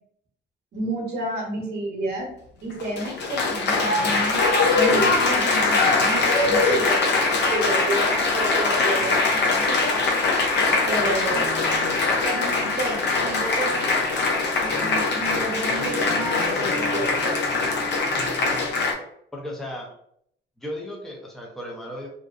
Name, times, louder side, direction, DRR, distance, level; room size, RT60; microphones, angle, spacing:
voice 1, 0.7-2.3 2.6-4.4 4.7-7.1 7.4-9.9 10.9-11.5 12.2-13.7 14.8-17.5, right 2 dB, 55° right, -2 dB, 0.8 m, -30 dB
Applause, 2.7-18.9, left 3 dB, 60° left, 0.6 m, -22 dB
voice 2, 19.3-19.9 20.6-22.1, left 1 dB, ahead, -1 dB, 0.5 m, -35 dB
2.5 x 2.1 x 2.3 m, 0.69 s
cardioid pair, 90°, 20 cm